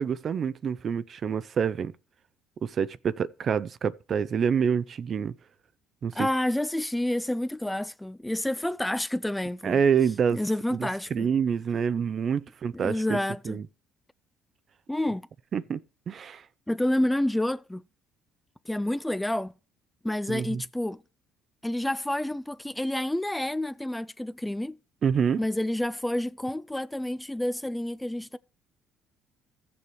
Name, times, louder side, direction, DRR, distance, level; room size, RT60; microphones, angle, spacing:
voice 1, 0.0-1.9 2.6-5.3 6.0-6.3 9.6-10.4 10.7-13.2 13.4-13.6 15.5-15.8 16.1-16.4 20.3-20.6 25.0-25.4, right 7 dB, 50° right, 0.5 m, -27 dB
voice 2, 6.1-9.8 10.3-11.3 12.7-13.6 14.9-15.3 16.7-17.8 18.7-19.5 20.0-21.0 21.6-24.8 25.4-28.4, left 1 dB, 5° left, 0.4 m, -29 dB
14.5 x 6.9 x 3.2 m
supercardioid pair, 80°, 0 cm